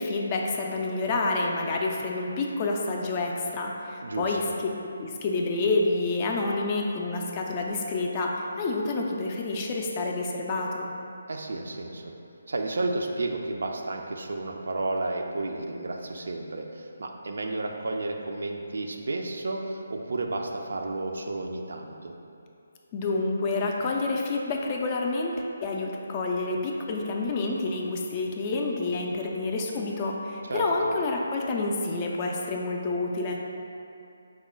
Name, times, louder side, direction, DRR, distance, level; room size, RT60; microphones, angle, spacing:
voice 1, 0.0-4.4 5.0-10.9 22.9-33.4, left 3 dB, 25° left, 0 dB, 0.4 m, -28 dB
voice 2, 4.0-4.5 11.3-12.1 12.5-22.1 30.4-30.9, right 2 dB, 60° right, 2 dB, 0.4 m, -32 dB
4.7 x 2.1 x 4.2 m, 2.6 s
figure-of-eight pair, 145°, 0 cm